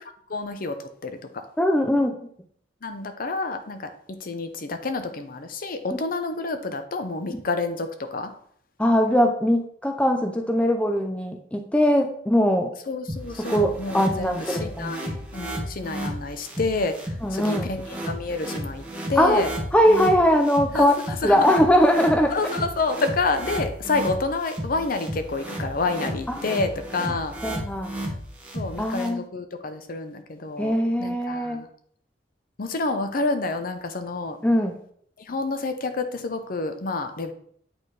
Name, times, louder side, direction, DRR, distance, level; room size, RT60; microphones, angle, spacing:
voice 1, 0.3-1.4 2.8-8.3 12.9-18.8 19.1-19.5 20.7-21.5 22.3-27.3 28.5-30.7 31.0-31.7 32.6-34.4 35.2-37.3, left 3 dB, 55° left, 8 dB, 0.7 m, -29 dB
voice 2, 1.6-2.2 5.9-6.0 7.3-7.4 8.8-12.7 13.5-15.0 17.2-17.7 19.2-19.4 19.7-20.9 21.2-22.3 27.4-27.9 28.8-29.2 30.6-31.6 34.4-34.8, equal, 5° left, 3 dB, 0.5 m, -21 dB
sound 1, 13.1-29.1, equal, 10° right, 1.3 m, -33 dB
8.5 x 4.0 x 3.3 m, 0.62 s
head